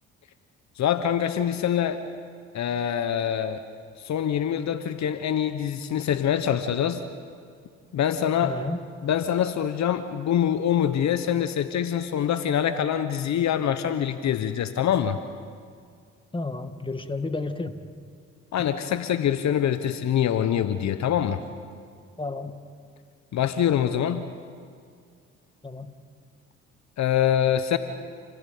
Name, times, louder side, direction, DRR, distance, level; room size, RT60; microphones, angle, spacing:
voice 1, 0.8-2.0 2.5-3.6 4.0-7.0 7.9-8.6 9.0-15.2 18.5-21.4 23.3-24.2 27.0-27.8, left 9 dB, 60° left, 11 dB, 1.2 m, -24 dB
voice 2, 8.4-8.8 16.3-17.8 22.2-22.6 25.6-25.9, left 3 dB, 15° left, 9 dB, 2.0 m, -31 dB
29.0 x 16.5 x 8.7 m, 2.2 s
hypercardioid pair, 60°, 32 cm